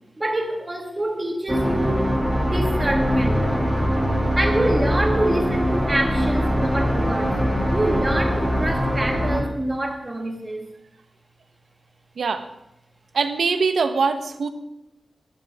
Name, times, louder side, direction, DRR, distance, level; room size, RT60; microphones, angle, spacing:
voice 1, 0.2-2.1 2.4-3.5 4.4-7.4 7.7-10.7, right 1 dB, 20° right, 1.8 m, -26 dB
sound 1, 1.5-9.4, equal, ahead, 1.9 m, -22 dB
voice 2, 13.1-14.5, right 4 dB, 75° right, 1.1 m, -22 dB
19.5 x 12.0 x 3.6 m
wide cardioid pair, 145°, 0 cm